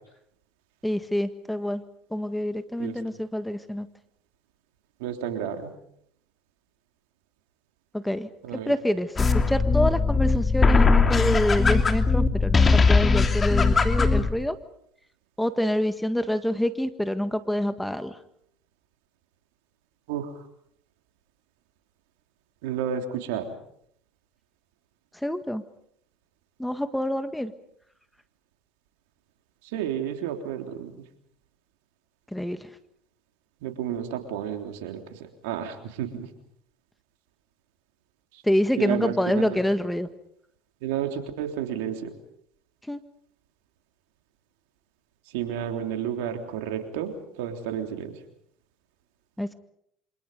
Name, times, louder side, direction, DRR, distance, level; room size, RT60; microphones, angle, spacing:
voice 1, 0.8-1.8 2.1-3.9 7.9-14.6 15.4-18.2 25.1-25.6 26.6-27.5 32.3-32.7 38.4-40.1 42.9-43.0 49.4-49.5, left 1 dB, 5° left, 10 dB, 1.7 m, -27 dB
voice 2, 5.0-5.7 8.5-8.7 20.1-20.3 22.6-23.5 29.7-30.9 33.6-35.0 35.4-36.3 38.8-39.5 40.8-42.1 45.3-48.1, right 9 dB, 75° right, 5 dB, 3.4 m, -31 dB
sound 1, 9.2-14.3, left 4 dB, 25° left, 2.9 m, -20 dB
27.5 x 26.5 x 5.3 m, 0.71 s
hypercardioid pair, 75°, 0 cm